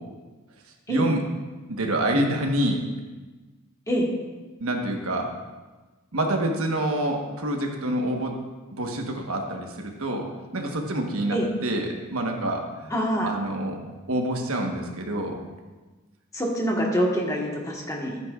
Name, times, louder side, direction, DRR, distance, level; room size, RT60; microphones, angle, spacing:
voice 1, 0.9-1.2 1.7-2.9 4.6-5.3 6.1-8.4 8.8-12.9 13.2-13.8 14.1-15.4, right 1 dB, 70° right, 2 dB, 1.3 m, -27 dB
voice 2, 12.9-13.3 16.3-18.2, equal, 15° left, -2 dB, 1.4 m, -25 dB
14.0 x 9.0 x 2.5 m, 1.3 s
head